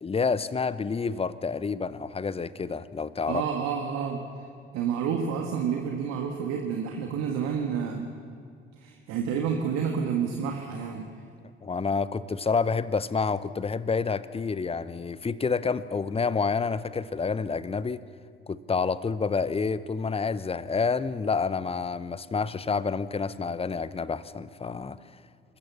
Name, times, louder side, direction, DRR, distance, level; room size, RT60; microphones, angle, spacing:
voice 1, 0.0-3.4 11.6-18.0 18.5-25.0, left 5 dB, 20° left, 16 dB, 0.8 m, -28 dB
voice 2, 3.3-4.2 4.7-8.1 8.8-11.1, right 7 dB, 60° right, 3 dB, 1.6 m, -29 dB
26.5 x 14.5 x 7.0 m, 2.3 s
figure-of-eight pair, 55°, 29 cm